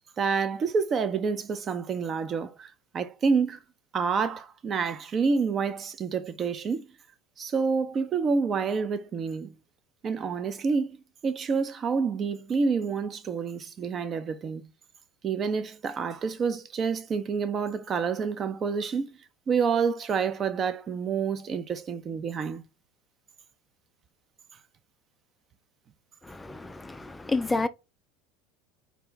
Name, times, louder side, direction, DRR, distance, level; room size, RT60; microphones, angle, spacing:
voice 1, 0.2-3.6 3.9-6.9 7.4-9.5 10.0-11.0 11.2-14.6 15.2-19.1 19.5-22.6, right 5 dB, 35° right, 0.5 m, -28 dB
voice 2, 26.2-27.7, left 3 dB, 10° left, 0.4 m, -30 dB
4.6 x 2.2 x 3.9 m
figure-of-eight pair, 75°, 0 cm